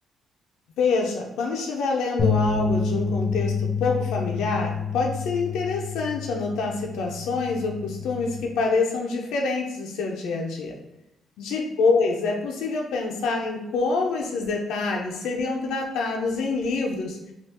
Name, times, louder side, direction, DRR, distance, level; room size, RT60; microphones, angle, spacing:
voice 1, 0.8-10.8 11.4-17.3, left 4 dB, 85° left, 1 dB, 0.5 m, -26 dB
sound 1, 2.2-8.4, left 5 dB, 45° left, 0.5 m, -28 dB
3.4 x 2.3 x 2.9 m, 0.93 s
cardioid pair, 90°, 0 cm